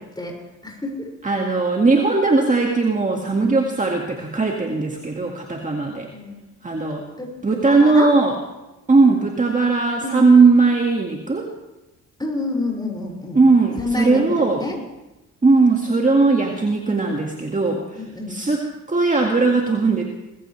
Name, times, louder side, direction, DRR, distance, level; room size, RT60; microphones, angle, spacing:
voice 1, 0.6-1.1 6.1-6.4 7.2-8.1 10.0-10.4 12.2-13.4 13.8-14.8 17.9-18.4, left 3 dB, 10° left, -1 dB, 6.2 m, -28 dB
voice 2, 1.2-6.1 6.6-7.0 7.4-8.4 8.9-11.5 13.3-14.6 15.4-18.0 18.3-20.0, right 3 dB, 20° right, 0 dB, 2.1 m, -18 dB
20.5 x 15.0 x 3.4 m, 0.98 s
supercardioid pair, 60°, 36 cm